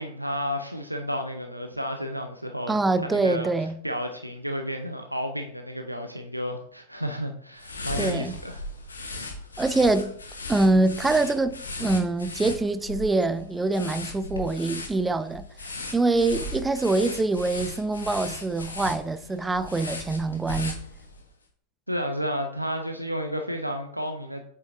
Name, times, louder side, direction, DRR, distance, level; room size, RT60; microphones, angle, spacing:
voice 1, 0.0-3.5 3.8-8.6 21.9-24.4, equal, 90° right, 0.5 m, -31 dB
voice 2, 2.7-3.8 8.0-8.4 9.6-10.2 10.5-15.5 15.9-20.8, right 2 dB, 10° right, 0.4 m, -24 dB
sound 1, 7.6-21.3, left 2 dB, 75° left, 1.0 m, -37 dB
7.8 x 5.6 x 2.6 m
figure-of-eight pair, 90°, 0 cm